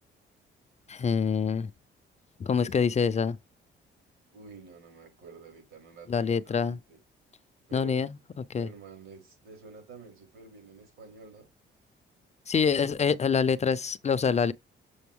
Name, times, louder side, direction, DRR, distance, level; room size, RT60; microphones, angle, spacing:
voice 1, 0.9-1.7 2.4-3.4 6.1-6.8 7.7-8.1 8.4-8.7 12.5-14.5, left 6 dB, 35° left, 0.5 m, -26 dB
voice 2, 2.4-3.0 4.3-7.0 7.7-8.1 8.6-11.5, right 5 dB, 80° right, 4.8 m, -49 dB
7.0 x 3.9 x 3.6 m
cardioid pair, 90°, 20 cm